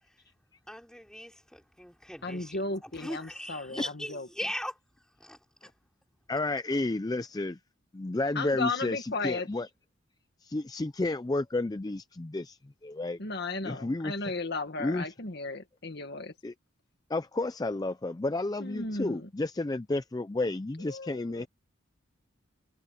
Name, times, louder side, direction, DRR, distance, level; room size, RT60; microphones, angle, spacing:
voice 1, 0.7-4.8 5.2-5.7, equal, 5° left, 5.6 m, -40 dB
voice 2, 2.2-4.3 8.4-9.5 13.2-16.3 18.6-19.3 20.9-21.5, left 3 dB, 50° left, 1.8 m, -35 dB
voice 3, 6.3-7.6 7.9-9.7 10.4-13.2 13.6-14.3 14.8-15.1 16.4-16.5 17.1-21.5, left 2 dB, 20° left, 0.4 m, -31 dB
head